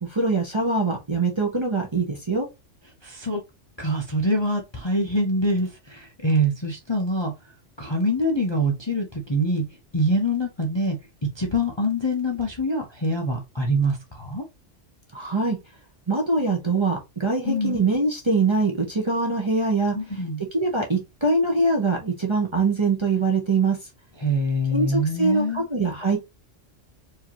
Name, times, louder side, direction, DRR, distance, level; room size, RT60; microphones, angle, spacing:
voice 1, 0.0-2.5 15.1-15.6 16.1-20.0 20.5-23.8 24.7-26.2, right 3 dB, 25° right, 0.8 m, -23 dB
voice 2, 3.0-3.4 3.8-7.3 7.8-9.6 9.9-11.0 11.4-14.4 17.4-17.8 19.9-20.4 24.2-25.7, equal, 25° left, 0.6 m, -24 dB
4.7 x 2.8 x 2.8 m
omnidirectional pair, 1.3 m